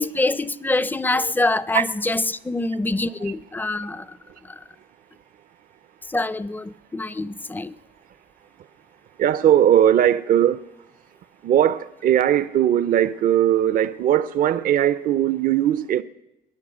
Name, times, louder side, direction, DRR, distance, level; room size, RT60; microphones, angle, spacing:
voice 1, 0.0-4.2 4.4-4.6 6.1-7.7, left 2 dB, 10° left, 0.5 m, -25 dB
voice 2, 9.2-10.7 11.4-16.0, right 10 dB, 50° right, 0.5 m, -19 dB
21.0 x 9.9 x 6.2 m
cardioid pair, 105°, 18 cm